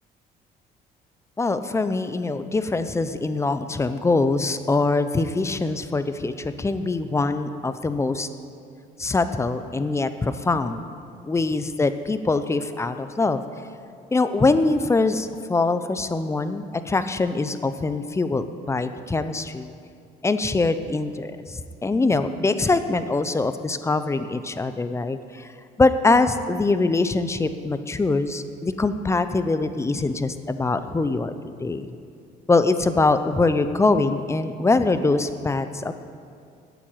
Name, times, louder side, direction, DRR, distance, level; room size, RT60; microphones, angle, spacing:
voice 1, 1.4-8.3 9.0-10.8 11.2-13.4 14.1-19.7 20.2-25.5 25.8-31.9 32.5-35.9, left 3 dB, 15° left, 11 dB, 0.6 m, -23 dB
9.0 x 7.5 x 9.0 m, 2.4 s
cardioid pair, 110°, 17 cm